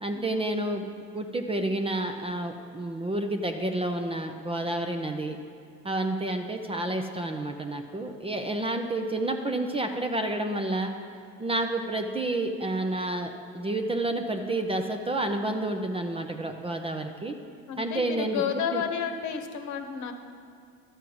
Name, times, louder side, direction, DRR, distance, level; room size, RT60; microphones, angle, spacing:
voice 1, 0.0-0.9 1.1-5.4 5.8-10.9 11.4-17.4 17.8-18.4 18.7-18.8, right 1 dB, 15° right, 5 dB, 0.6 m, -30 dB
voice 2, 17.7-20.1, left 7 dB, 55° left, 6 dB, 1.1 m, -31 dB
12.5 x 4.5 x 7.9 m, 2.4 s
supercardioid pair, 110°, 35 cm